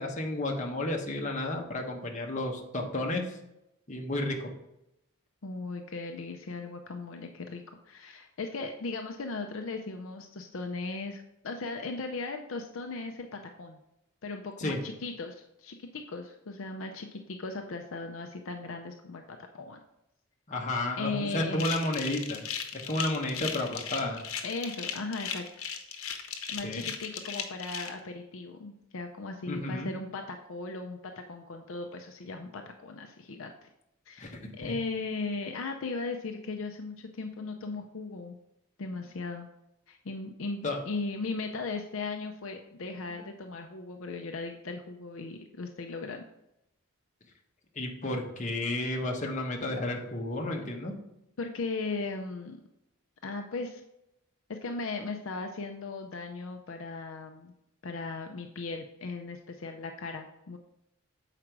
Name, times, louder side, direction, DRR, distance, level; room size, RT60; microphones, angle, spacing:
voice 1, 0.0-3.3 3.9-4.5 14.6-14.8 20.5-22.4 22.7-24.2 26.6-26.8 29.5-29.9 34.2-34.4 40.6-40.8 43.1-43.2 47.8-50.9, left 1 dB, 35° left, 1 dB, 1.1 m, -32 dB
voice 2, 5.4-13.8 14.2-19.2 19.5-19.8 21.0-21.7 24.4-25.4 26.0-26.1 26.5-33.7 34.1-38.4 38.8-39.5 39.9-46.2 51.4-52.6 53.2-53.8 54.5-57.5 57.8-60.6, left 3 dB, 70° left, 4 dB, 0.6 m, -37 dB
sound 1, 21.5-27.9, left 7 dB, 85° left, 1.0 m, -36 dB
7.3 x 5.0 x 4.6 m, 0.86 s
head